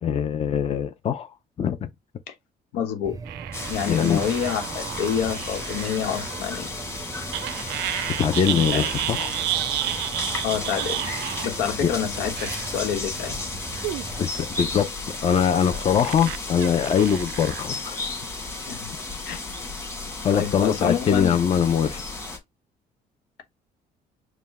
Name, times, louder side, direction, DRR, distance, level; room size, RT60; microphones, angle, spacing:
voice 1, 0.0-1.3 1.6-1.9 3.9-4.2 8.2-9.3 11.8-11.9 14.2-14.9 15.2-18.0 20.2-22.0, left 8 dB, 35° left, 0.6 m, -22 dB
voice 2, 2.7-3.2 3.7-6.7 8.5-8.9 10.4-11.1 11.4-13.4 18.7-18.9 19.3-19.4 20.3-21.4, left 8 dB, 90° left, 1.2 m, -28 dB
sound 1, 3.0-14.3, right 5 dB, 20° right, 0.5 m, -40 dB
sound 2, 3.3-6.4 7.3-11.6 12.4-12.8 13.7-14.2 15.1-17.6, right 14 dB, 90° right, 0.5 m, -31 dB
sound 3, 3.5-22.4, left 3 dB, 15° left, 1.6 m, -34 dB
5.1 x 2.3 x 3.5 m
cardioid pair, 110°, 17 cm